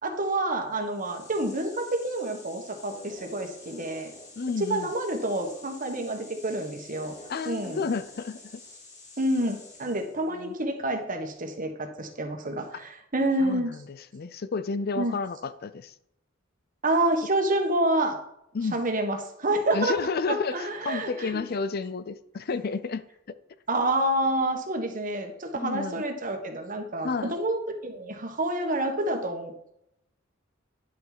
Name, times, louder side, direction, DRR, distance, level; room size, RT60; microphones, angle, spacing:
voice 1, 0.0-4.1 4.6-7.1 7.4-7.9 9.2-13.8 14.9-15.2 16.8-18.2 18.6-21.4 23.7-29.7, right 1 dB, 45° right, 1.4 m, -28 dB
sound 1, 0.7-10.3, left 2 dB, 40° left, 2.9 m, -48 dB
voice 2, 4.4-4.9 7.3-8.4 10.3-10.5 13.4-13.8 14.1-15.9 18.5-18.8 19.7-23.0 25.5-26.0 27.0-27.3, left 4 dB, 55° left, 0.5 m, -31 dB
10.0 x 7.3 x 4.1 m
head